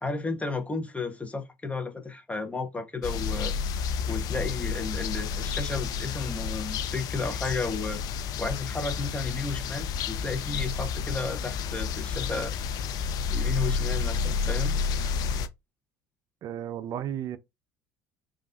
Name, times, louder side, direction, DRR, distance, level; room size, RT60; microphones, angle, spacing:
voice 1, 0.0-3.5 4.1-8.0 8.4-12.5 13.3-14.8, left 3 dB, 15° left, 0.8 m, -33 dB
sound 1, 3.0-15.5, left 6 dB, 55° left, 0.4 m, -30 dB
voice 2, 16.4-17.4, right 10 dB, 50° right, 0.4 m, -33 dB
3.4 x 2.4 x 2.3 m
hypercardioid pair, 60°, 8 cm